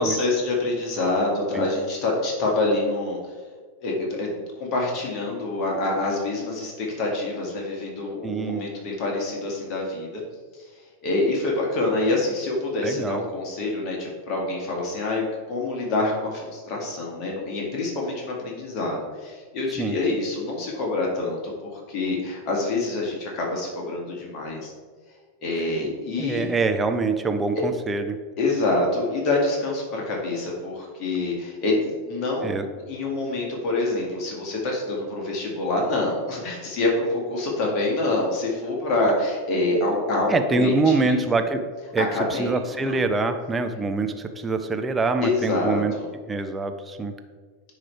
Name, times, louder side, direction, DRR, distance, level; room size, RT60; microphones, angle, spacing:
voice 1, 0.0-3.2 3.8-4.3 4.6-10.2 10.6-10.7 11.0-24.7 25.4-26.5 27.6-27.7 28.4-32.6 32.9-41.2 42.0-42.6 42.9-43.0 45.2-46.1, left 2 dB, 35° left, -2 dB, 1.9 m, -26 dB
voice 2, 8.2-8.6 12.8-13.3 19.8-20.0 26.2-28.2 32.4-32.7 40.3-45.9 46.3-47.1, right 3 dB, 15° right, 7 dB, 0.5 m, -25 dB
9.7 x 3.3 x 4.5 m, 1.5 s
figure-of-eight pair, 90°, 0 cm